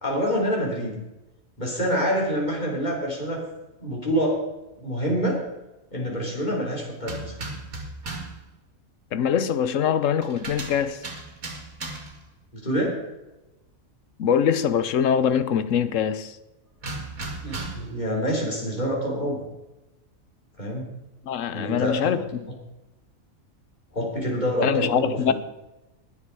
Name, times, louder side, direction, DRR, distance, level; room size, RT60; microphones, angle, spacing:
voice 1, 0.0-1.0 1.6-3.4 3.8-4.4 4.8-5.4 5.9-7.4 12.5-13.0 17.4-19.4 20.6-20.9 21.5-22.1 23.9-25.3, equal, 30° left, 3.9 m, -26 dB
sound 1, 7.0-8.4 10.2-12.3 16.8-18.0, right 2 dB, 75° right, 2.4 m, -36 dB
voice 2, 9.1-11.0 14.2-16.4 21.2-22.5 24.6-25.3, left 8 dB, 65° left, 1.2 m, -23 dB
20.5 x 7.3 x 4.7 m
omnidirectional pair, 1.5 m